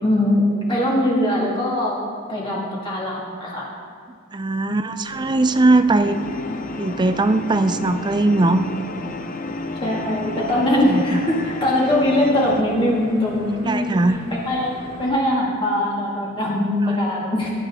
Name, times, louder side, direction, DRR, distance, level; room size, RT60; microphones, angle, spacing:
voice 1, 0.0-2.0 2.3-3.7 4.7-4.8 9.8-14.2 14.5-14.7 15.0-17.5, left 1 dB, 25° left, -5 dB, 1.9 m, -21 dB
voice 2, 4.3-6.2 6.8-8.7 10.8-11.2 13.7-14.2, right 2 dB, 20° right, 10 dB, 0.4 m, -19 dB
sound 1, 5.1-15.1, equal, 75° left, 3.7 m, -40 dB
sound 2, 6.0-12.6, left 2 dB, 40° left, 0.5 m, -32 dB
18.0 x 10.0 x 3.6 m, 2.1 s
head